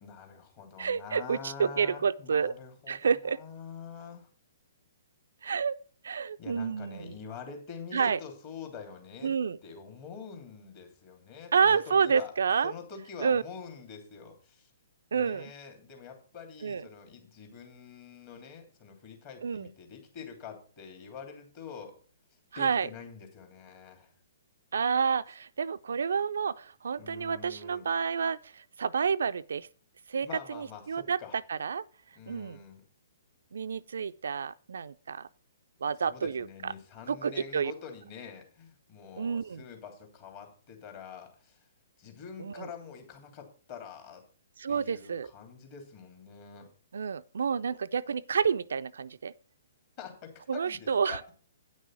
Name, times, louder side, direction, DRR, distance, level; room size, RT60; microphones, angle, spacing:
voice 1, 0.0-4.3 6.4-9.3 9.6-12.3 12.6-14.7 15.1-21.9 22.5-24.1 27.0-27.9 30.2-31.4 32.1-32.8 36.1-41.6 42.0-44.2 44.7-46.7 50.0-51.3, left 6 dB, 40° left, 2.9 m, -46 dB
voice 2, 0.8-2.5 2.9-3.4 5.4-5.8 6.0-7.1 7.9-8.2 9.2-9.6 11.5-12.7 13.2-13.4 15.1-15.5 16.6-16.9 19.4-19.7 22.5-22.9 24.7-29.7 30.1-31.2 31.5-31.8 32.3-32.6 33.5-35.3 35.8-36.7 37.1-37.7 39.2-39.7 42.4-42.7 44.6-45.3 46.9-49.3 50.5-51.2, right 6 dB, 65° right, 0.4 m, -29 dB
9.3 x 6.3 x 6.0 m
figure-of-eight pair, 125°, 0 cm